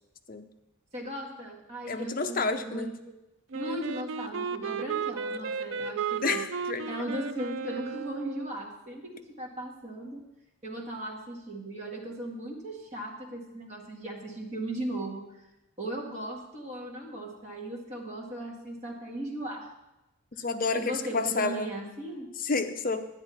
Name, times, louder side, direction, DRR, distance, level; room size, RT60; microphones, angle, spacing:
voice 1, 0.9-3.1 3.5-6.4 6.9-10.2 10.6-15.5 15.8-19.7 20.3-20.5 20.7-22.3, right 1 dB, 30° right, -2 dB, 1.8 m, -37 dB
voice 2, 1.9-2.9 6.2-6.9 20.4-21.7 22.4-23.0, left 3 dB, 40° left, 7 dB, 0.6 m, -29 dB
Wind instrument woodwind instrument, 3.5-8.6, right 5 dB, 60° right, 0.4 m, -34 dB
10.0 x 9.5 x 4.1 m, 0.95 s
head